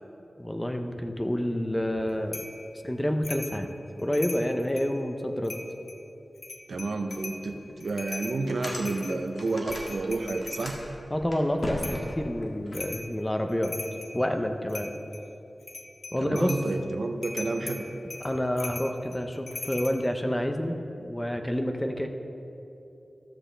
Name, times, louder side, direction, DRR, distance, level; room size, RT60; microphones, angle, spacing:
voice 1, 0.4-2.4 2.8-3.7 4.0-5.5 11.1-13.7 14.1-14.9 16.1-16.6 18.2-22.1, equal, 15° left, 5 dB, 0.6 m, -28 dB
sound 1, 2.3-2.6 3.2-3.6 4.0-4.9 5.4-6.0 6.4-7.4 7.8-10.7 11.8-12.1 12.7-13.1 13.5-14.2 14.7-15.2 15.6-16.7 17.2-20.0, left 3 dB, 75° left, 0.7 m, -40 dB
voice 2, 6.7-10.8 16.2-17.8, right 3 dB, 80° right, 5 dB, 0.7 m, -30 dB
sound 2, 7.1-7.2 7.7-7.8 8.2-10.1 10.3-12.8, left 1 dB, 50° left, 1.5 m, -38 dB
13.5 x 7.7 x 3.3 m, 3.0 s
wide cardioid pair, 90°, 0 cm